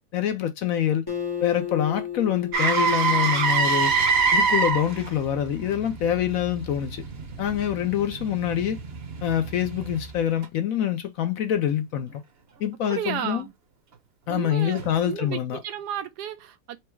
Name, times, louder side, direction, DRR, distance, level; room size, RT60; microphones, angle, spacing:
voice 1, 0.1-1.0 1.4-3.9 4.3-7.0 7.4-8.8 9.2-12.2 12.6-13.4 14.3-15.6, left 10 dB, 65° left, 0.9 m, -25 dB
Acoustic guitar, 1.1-4.6, left 9 dB, 30° left, 0.4 m, -35 dB
Motor vehicle (road), 2.5-10.5 14.8-14.9, right 5 dB, 45° right, 0.9 m, -26 dB
voice 2, 12.9-13.5 14.3-16.8, right 10 dB, 80° right, 1.2 m, -33 dB
4.6 x 2.0 x 4.4 m
omnidirectional pair, 1.7 m